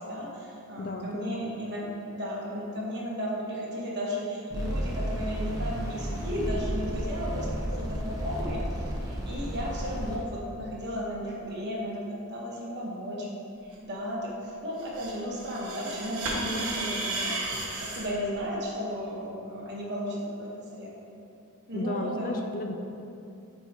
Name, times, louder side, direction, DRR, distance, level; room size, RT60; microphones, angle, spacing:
voice 1, 0.0-13.3 13.6-20.9 21.7-22.4, equal, 50° right, -3 dB, 1.2 m, -34 dB
voice 2, 0.8-1.6 21.7-22.7, left 2 dB, 40° left, 4 dB, 0.4 m, -34 dB
sound 1, 4.5-10.2, equal, 15° right, 1.0 m, -32 dB
sound 2, 14.8-18.1, right 2 dB, 70° right, 1.0 m, -33 dB
8.9 x 4.6 x 2.9 m, 2.6 s
head